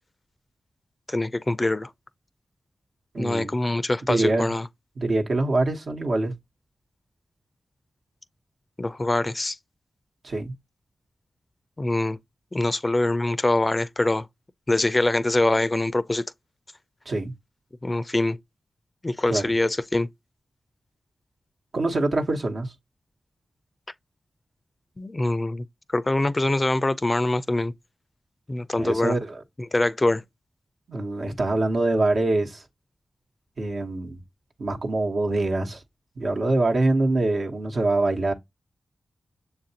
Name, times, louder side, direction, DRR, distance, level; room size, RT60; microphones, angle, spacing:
voice 1, 1.1-1.9 3.2-4.7 8.8-9.6 11.8-12.2 12.5-14.3 14.7-16.2 17.8-18.4 19.0-20.1 25.0-25.6 25.9-27.7 28.5-29.2 29.7-30.2, left 2 dB, 30° left, 0.4 m, -24 dB
voice 2, 3.1-3.5 4.1-4.5 5.0-6.3 10.2-10.5 17.1-17.3 19.3-19.4 21.7-22.7 28.8-29.4 30.9-32.6 33.6-34.2 34.6-35.8 36.2-38.3, right 2 dB, 70° right, 1.1 m, -24 dB
6.8 x 2.5 x 2.8 m
cardioid pair, 40°, 0 cm